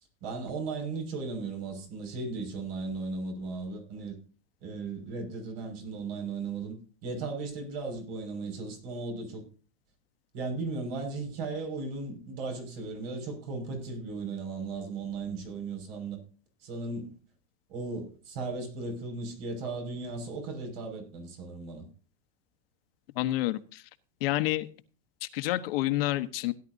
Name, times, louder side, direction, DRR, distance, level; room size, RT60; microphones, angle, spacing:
voice 1, 0.2-4.2 4.6-9.4 10.3-16.2 16.6-17.1 17.7-21.9, right 3 dB, 70° right, 5.8 m, -36 dB
voice 2, 23.2-23.8 24.2-24.7 25.2-26.5, left 16 dB, 75° left, 1.2 m, -28 dB
16.5 x 11.0 x 2.7 m
supercardioid pair, 145°, 29 cm